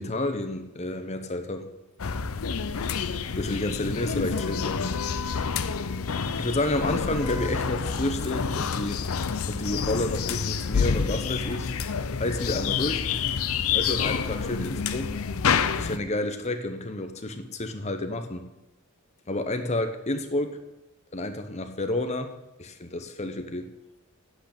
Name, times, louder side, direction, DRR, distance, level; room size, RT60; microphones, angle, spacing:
voice 1, 0.0-1.7 3.4-4.9 6.4-9.0 9.5-11.7 12.2-13.1 13.7-15.1 15.7-18.5 19.3-20.6 21.1-22.3 22.6-23.7, left 1 dB, 30° left, 7 dB, 1.0 m, -30 dB
sound 1, 2.0-16.0, left 6 dB, 70° left, 0.6 m, -28 dB
8.5 x 8.1 x 8.7 m, 0.95 s
head